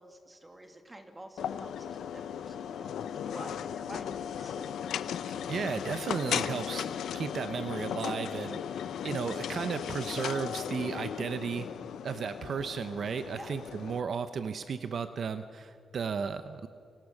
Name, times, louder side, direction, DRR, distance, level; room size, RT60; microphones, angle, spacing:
voice 1, 0.0-2.9 3.2-4.6 13.3-13.5, right 1 dB, 15° right, 5 dB, 2.7 m, -48 dB
sound 1, 1.4-14.0, left 9 dB, 85° left, 0.9 m, -36 dB
voice 2, 5.5-6.9 7.1-11.7 12.0-16.7, right 6 dB, 55° right, 10 dB, 0.9 m, -34 dB
30.0 x 24.5 x 6.6 m, 2.7 s
cardioid pair, 135°, 0 cm